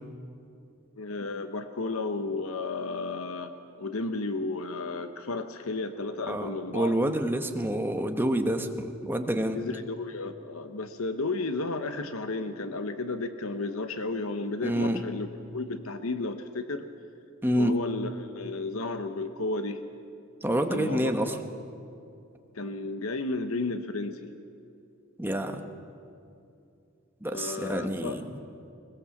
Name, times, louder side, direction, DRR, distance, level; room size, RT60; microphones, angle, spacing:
voice 1, 1.0-6.9 9.5-15.3 15.5-16.9 17.6-19.8 20.7-21.4 22.5-24.3 27.3-28.2, left 3 dB, 85° left, 8 dB, 1.0 m, -33 dB
voice 2, 6.3-9.6 14.6-15.0 17.4-17.8 20.4-21.3 25.2-25.6 27.2-28.4, right 1 dB, 10° right, 5 dB, 1.1 m, -28 dB
20.5 x 20.5 x 7.2 m, 2.6 s
head